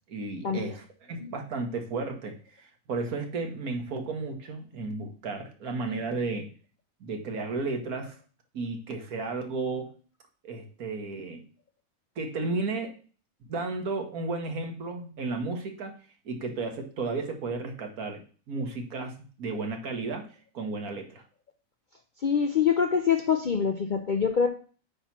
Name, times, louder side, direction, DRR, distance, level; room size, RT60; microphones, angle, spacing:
voice 1, 0.1-6.5 7.0-8.2 8.5-9.9 10.4-11.4 12.2-12.9 13.5-15.9 16.2-18.2 18.5-20.2 20.5-21.2, right 3 dB, 80° right, 4 dB, 1.7 m, -33 dB
voice 2, 22.2-24.5, left 7 dB, 60° left, 5 dB, 0.5 m, -25 dB
8.8 x 3.0 x 5.7 m, 0.39 s
omnidirectional pair, 1.5 m